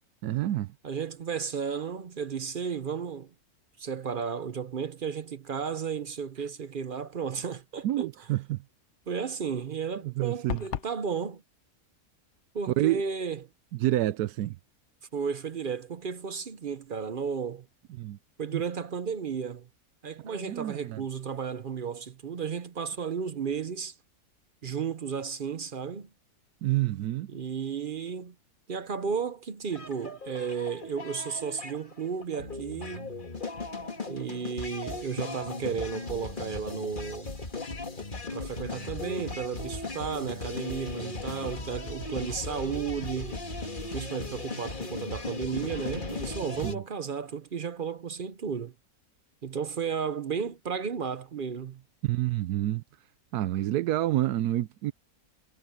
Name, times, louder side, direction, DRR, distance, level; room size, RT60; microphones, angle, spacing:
voice 1, 0.2-0.7 7.8-8.6 10.0-10.6 12.8-13.0 13.7-14.6 18.0-18.2 18.5-18.6 20.3-21.0 26.6-27.3 46.6-46.8 52.0-52.8 53.3-54.9, right 14 dB, 90° right, 1.2 m, -28 dB
voice 2, 0.8-3.3 3.8-8.1 9.1-11.4 12.5-13.5 15.1-17.7 18.4-19.7 20.0-23.9 24.6-26.1 27.3-28.3 28.7-33.1 34.1-37.3 38.3-43.4 43.9-48.7 49.4-51.8, right 6 dB, 45° right, 0.7 m, -33 dB
sound 1, 10.5-11.0, left 9 dB, 55° left, 0.9 m, -33 dB
sound 2, 29.7-46.7, left 3 dB, 30° left, 2.2 m, -37 dB
omnidirectional pair, 1.6 m